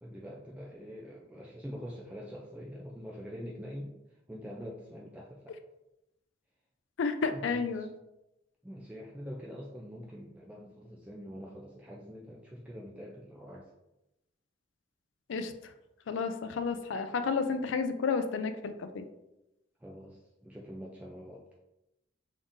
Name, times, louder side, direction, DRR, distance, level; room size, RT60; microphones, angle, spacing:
voice 1, 0.0-3.9 4.3-5.6 7.3-7.9 8.6-13.6 19.8-21.4, equal, 5° right, -3 dB, 0.3 m, -44 dB
voice 2, 7.0-7.9 15.3-15.5 16.1-19.1, left 5 dB, 90° left, 9 dB, 0.4 m, -31 dB
3.7 x 3.6 x 2.6 m, 0.92 s
head